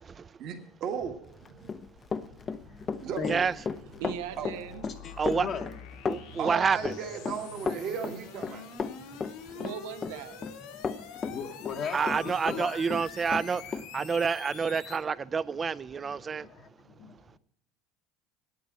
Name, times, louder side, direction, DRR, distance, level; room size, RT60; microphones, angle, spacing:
voice 1, 0.4-1.3 1.6-1.7 3.0-3.5 4.4-4.5 6.4-8.7, right 7 dB, 55° right, 1.6 m, -35 dB
sound 1, 1.2-15.0, left 7 dB, 80° left, 1.6 m, -47 dB
Run, 1.4-12.6 12.9-13.9, left 5 dB, 30° left, 0.6 m, -34 dB
voice 2, 2.4-2.9 3.2-3.5 5.0-5.6 11.2-12.7 16.1-17.4, left 6 dB, 50° left, 1.0 m, -38 dB
voice 3, 4.0-4.9 9.5-10.4, right 10 dB, 85° right, 0.9 m, -39 dB
voice 4, 6.1-6.9 11.9-13.6 13.9-16.5, right 5 dB, 30° right, 0.4 m, -28 dB
8.8 x 8.7 x 7.2 m
supercardioid pair, 100°, 0 cm